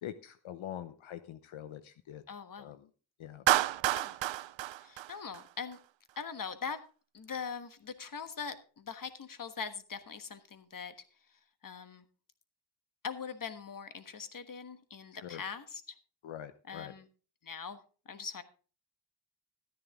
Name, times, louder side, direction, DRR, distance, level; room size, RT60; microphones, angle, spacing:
voice 1, 0.0-2.2 2.6-2.9 3.2-3.4 15.1-15.4 16.2-16.9, left 10 dB, 80° left, 11 dB, 0.8 m, -44 dB
voice 2, 2.3-2.7 3.9-4.2 4.8-5.8 6.2-6.8 7.1-10.9 11.6-12.0 13.0-16.0 16.7-17.1 17.4-18.4, left 6 dB, 45° left, 11 dB, 1.4 m, -42 dB
Clapping, 3.5-5.8, right 14 dB, 70° right, 0.6 m, -30 dB
13.0 x 10.0 x 3.6 m, 0.37 s
cardioid pair, 75°, 47 cm